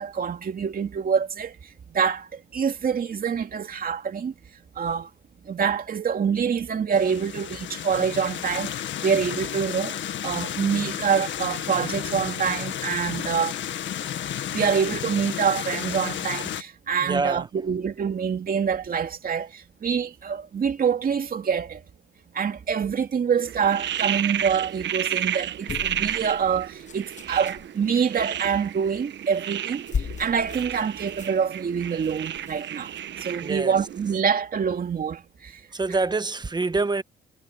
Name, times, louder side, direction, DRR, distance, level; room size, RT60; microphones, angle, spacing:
voice 1, 0.0-1.6 1.9-4.3 4.8-5.1 5.5-13.6 14.5-21.8 22.3-29.8 30.2-32.9 33.2-35.5, right 7 dB, 45° right, 2.6 m, -26 dB
sound 1, 6.9-16.6, left 10 dB, 70° left, 1.9 m, -32 dB
voice 2, 17.0-17.6 33.4-33.8 35.7-37.0, right 3 dB, 20° right, 1.3 m, -26 dB
sound 2, 23.4-34.2, right 10 dB, 65° right, 1.3 m, -32 dB
sound 3, 25.7-27.7 29.2-29.4 29.7-33.3 33.9-34.0, left 6 dB, 40° left, 1.5 m, -37 dB
cardioid pair, 90°, 20 cm